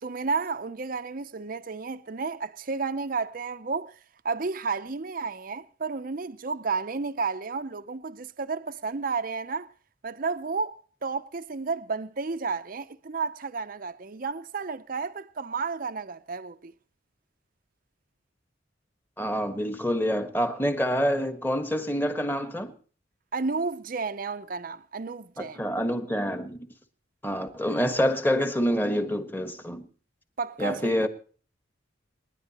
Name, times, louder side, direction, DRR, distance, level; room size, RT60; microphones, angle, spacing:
voice 1, 0.0-4.0 4.2-9.7 10.0-10.8 11.0-16.7 23.3-25.6 30.4-31.1, right 4 dB, 45° right, 0.6 m, -32 dB
voice 2, 19.2-22.7 25.4-26.6 27.2-29.8 30.6-31.1, equal, 10° left, 1.4 m, -27 dB
28.0 x 10.5 x 3.0 m
head